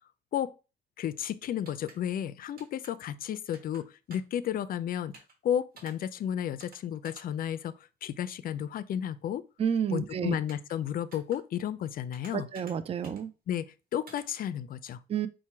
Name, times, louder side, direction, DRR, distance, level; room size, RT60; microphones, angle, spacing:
voice 1, 1.0-5.2 5.4-7.7 8.0-9.4 9.9-12.5 13.5-15.0, left 10 dB, 55° left, 0.4 m, -33 dB
sound 1, 1.6-2.0 2.6-2.9 3.5-3.8 4.1-4.4 5.1-5.3 5.8-5.9 6.6-6.8 7.0-7.2 10.5-10.7 11.1-11.4 12.1-12.7 13.0-13.2 14.1-14.2, right 3 dB, 55° right, 1.3 m, -51 dB
voice 2, 9.6-10.3 12.3-13.3 15.1-15.3, right 8 dB, 35° right, 0.4 m, -30 dB
4.3 x 2.2 x 4.5 m
cardioid pair, 95°, 18 cm